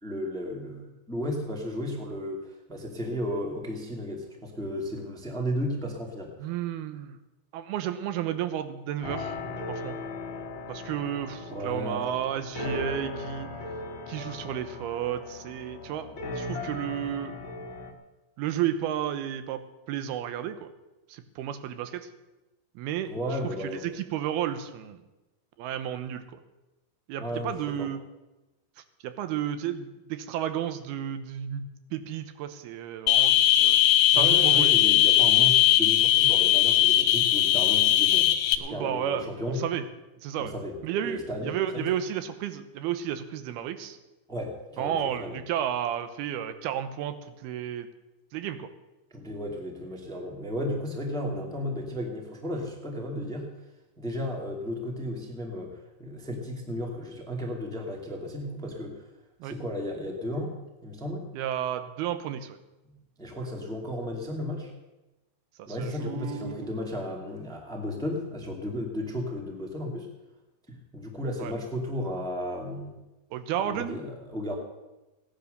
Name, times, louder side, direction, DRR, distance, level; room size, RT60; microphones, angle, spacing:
voice 1, 0.0-6.5 11.5-12.0 23.1-23.8 27.2-27.9 34.1-39.6 40.4-40.7 41.0-41.9 44.3-45.4 49.1-53.5 54.0-59.1 59.4-60.5 60.8-61.3 62.8-64.7 65.7-70.1 70.7-73.0 73.6-74.5, left 1 dB, ahead, 1 dB, 1.1 m, -34 dB
voice 2, 6.4-7.2 7.5-9.4 9.7-10.0 10.7-13.5 14.1-16.1 16.4-17.3 18.4-20.7 21.1-22.1 22.8-23.1 23.4-25.0 25.6-26.2 27.1-28.0 29.0-31.6 31.9-33.8 34.1-34.7 38.6-39.8 40.2-40.5 40.8-44.0 44.8-47.9 48.3-48.7 59.4-59.5 61.3-62.6 65.6-66.6 71.4-71.5 73.3-74.0, right 10 dB, 80° right, 10 dB, 2.9 m, -32 dB
sound 1, 9.0-17.9, left 3 dB, 40° left, 2.0 m, -37 dB
sound 2, 33.1-38.5, left 12 dB, 75° left, 2.7 m, -20 dB
17.0 x 10.5 x 6.6 m, 1.1 s
omnidirectional pair, 4.5 m